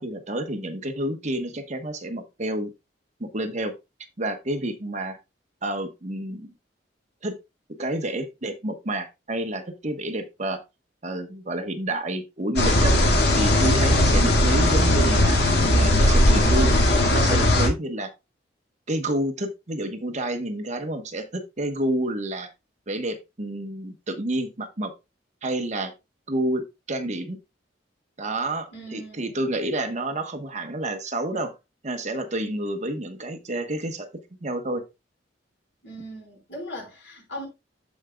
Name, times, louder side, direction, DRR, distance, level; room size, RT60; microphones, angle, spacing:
voice 1, 0.0-2.7 3.2-3.7 4.2-5.2 5.6-6.5 7.2-7.4 7.8-10.6 11.0-12.9 13.4-16.7 17.1-18.1 18.9-22.5 22.9-24.9 25.4-25.9 26.3-27.4 28.2-31.5 31.8-34.1 34.4-34.8, right 1 dB, 40° right, 1.2 m, -29 dB
sound 1, 12.6-17.7, left 1 dB, 65° left, 2.1 m, -18 dB
voice 2, 28.7-29.4 35.8-37.5, equal, 90° left, 4.7 m, -39 dB
14.5 x 5.0 x 2.3 m
head